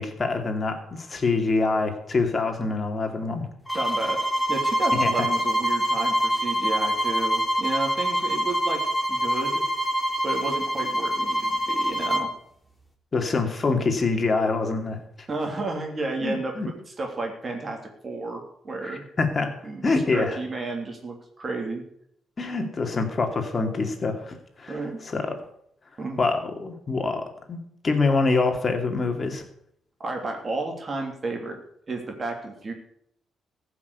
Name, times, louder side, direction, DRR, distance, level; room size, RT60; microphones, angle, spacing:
voice 1, 0.0-3.4 4.9-5.1 13.1-15.0 16.2-16.7 18.8-19.5 19.8-20.4 22.4-25.4 26.2-27.6 27.8-29.4, left 3 dB, 35° left, 4 dB, 2.6 m, -25 dB
sound 1, 3.7-12.3, equal, 5° left, 2.8 m, -25 dB
voice 2, 3.7-4.2 4.5-8.8 9.1-9.6 10.2-12.3 15.3-16.5 17.0-19.0 19.6-21.8 24.7-25.0 26.0-26.2 30.0-31.6 31.9-32.7, right 3 dB, 35° right, 1 dB, 3.1 m, -32 dB
14.5 x 6.3 x 8.2 m, 0.71 s
cardioid pair, 90°, 0 cm